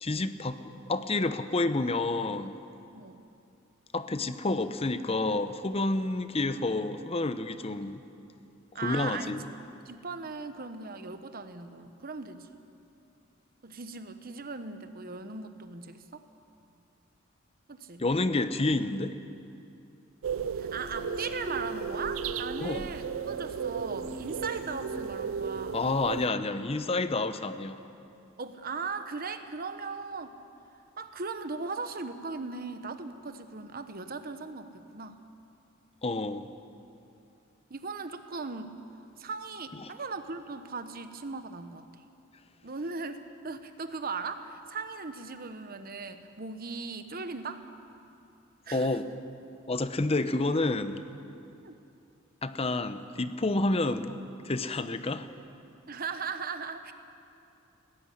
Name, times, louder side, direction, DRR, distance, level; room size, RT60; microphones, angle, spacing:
voice 1, 0.0-2.6 3.9-8.0 8.7-9.4 18.0-19.2 22.6-22.9 25.7-27.8 36.0-36.5 39.8-39.9 48.7-49.0 49.7-51.0 52.4-54.2 54.4-55.3, left 2 dB, 30° left, 11 dB, 0.8 m, -29 dB
voice 2, 8.7-9.3 9.8-12.5 13.6-16.2 17.7-18.0 20.6-25.8 28.4-30.4 31.0-35.2 37.7-38.8 39.2-41.9 42.6-47.6 48.7-49.0 51.6-51.7 53.8-54.0 55.9-56.9, right 4 dB, 45° right, 9 dB, 1.1 m, -38 dB
sound 1, 20.2-26.3, right 7 dB, 70° right, 0.4 m, -35 dB
sound 2, 20.6-26.0, equal, 20° right, 7.1 m, -43 dB
19.0 x 14.0 x 10.0 m, 2.7 s
head